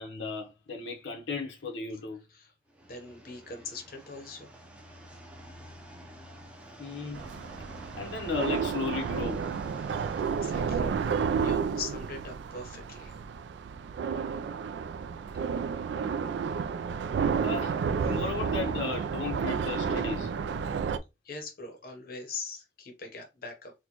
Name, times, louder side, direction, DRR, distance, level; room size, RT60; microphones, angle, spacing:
voice 1, 0.0-2.2 6.8-7.2 8.0-9.5 17.4-17.8 18.0-20.3, left 4 dB, 90° left, 0.8 m, -35 dB
sound 1, 2.7-10.7, equal, 5° right, 0.5 m, -49 dB
voice 2, 2.9-4.5 10.4-13.2 21.2-23.7, left 4 dB, 50° left, 0.7 m, -42 dB
sound 2, 7.1-21.0, right 6 dB, 75° right, 0.3 m, -31 dB
4.2 x 2.2 x 2.8 m
head